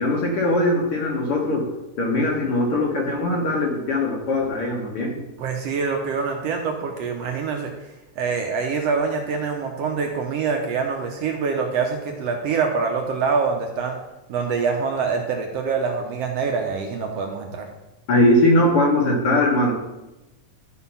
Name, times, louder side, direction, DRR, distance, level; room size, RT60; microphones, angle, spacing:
voice 1, 0.0-1.7 2.0-5.2 18.1-19.7, left 1 dB, 55° left, 0 dB, 1.8 m, -20 dB
voice 2, 5.4-7.7 8.2-14.0 14.3-17.7, right 5 dB, 70° right, 2 dB, 1.7 m, -25 dB
12.0 x 4.2 x 5.6 m, 1.0 s
omnidirectional pair, 3.4 m